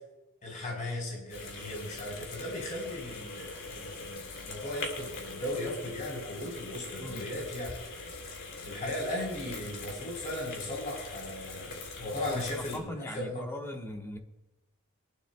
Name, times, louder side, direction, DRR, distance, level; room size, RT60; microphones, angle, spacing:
voice 1, 0.4-8.1 8.6-13.5, left 1 dB, 35° left, -3 dB, 3.6 m, -37 dB
sound 1, 1.3-12.8, left 3 dB, 60° left, 2.8 m, -42 dB
voice 2, 7.0-7.3 12.2-14.2, left 1 dB, 10° left, 3 dB, 1.2 m, -40 dB
23.5 x 11.5 x 2.2 m, 1.0 s
head